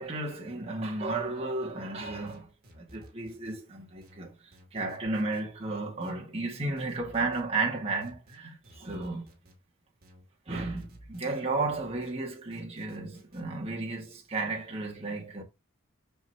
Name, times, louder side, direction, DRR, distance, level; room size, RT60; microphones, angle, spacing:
voice 1, 0.0-2.5 2.8-4.4 4.7-9.3 10.5-15.4, right 3 dB, 25° right, 1.8 m, -33 dB
sound 1, 2.0-3.6 4.0-5.5 6.0-7.4 8.0-9.6 10.0-11.5 12.0-13.4, equal, 45° right, 2.5 m, -55 dB
6.3 x 5.6 x 2.8 m
head